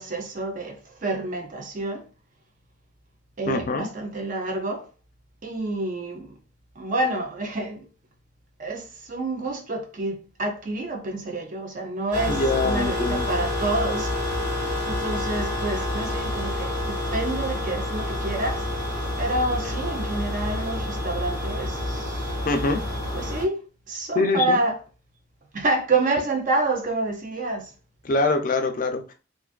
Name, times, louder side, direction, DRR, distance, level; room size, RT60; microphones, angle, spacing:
voice 1, 0.0-2.1 3.4-4.9 5.4-6.3 6.8-7.9 8.6-14.1 14.9-18.7 19.2-22.4 23.1-24.8 25.5-27.7, right 2 dB, 45° right, 0.5 m, -28 dB
voice 2, 3.5-3.9 12.2-13.3 22.5-22.8 24.2-24.6 28.0-29.1, left 3 dB, 45° left, 0.4 m, -24 dB
sound 1, 12.1-23.5, left 1 dB, 65° right, 1.3 m, -28 dB
2.5 x 2.3 x 2.3 m
head